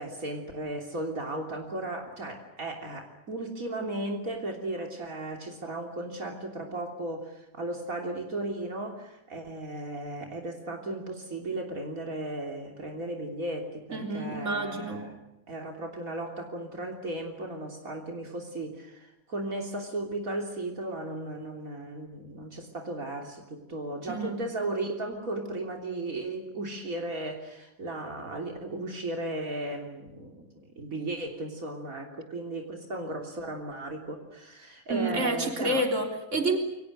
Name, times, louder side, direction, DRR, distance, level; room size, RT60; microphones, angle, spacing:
voice 1, 0.0-15.2 15.5-35.9, right 2 dB, 75° right, 2 dB, 3.7 m, -36 dB
voice 2, 13.9-15.1 24.1-24.4 34.9-36.6, right 1 dB, 60° right, 3 dB, 4.1 m, -29 dB
28.5 x 24.5 x 6.6 m, 0.93 s
omnidirectional pair, 1.5 m